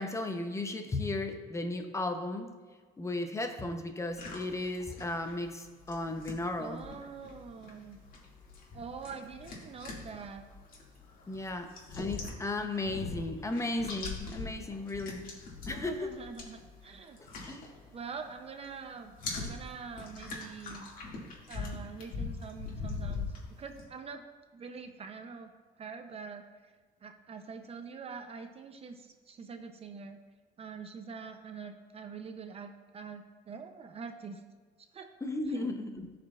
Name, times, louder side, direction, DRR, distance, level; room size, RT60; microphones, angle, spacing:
voice 1, 0.0-2.5 3.0-6.8 11.3-15.3 15.7-16.1 17.2-17.7 35.2-36.1, left 2 dB, 15° left, 6 dB, 0.7 m, -35 dB
sound 1, 4.1-18.4 18.6-23.8, left 4 dB, 55° left, 2.1 m, -42 dB
voice 2, 6.6-8.0 8.7-10.5 15.7-17.2 17.9-20.9 21.5-24.3 24.5-25.5 25.8-26.5 27.0-30.2 30.6-34.4 34.9-35.1 35.5-35.7, right 5 dB, 35° right, 7 dB, 0.6 m, -44 dB
14.5 x 5.0 x 2.4 m, 1.4 s
cardioid pair, 110°, 17 cm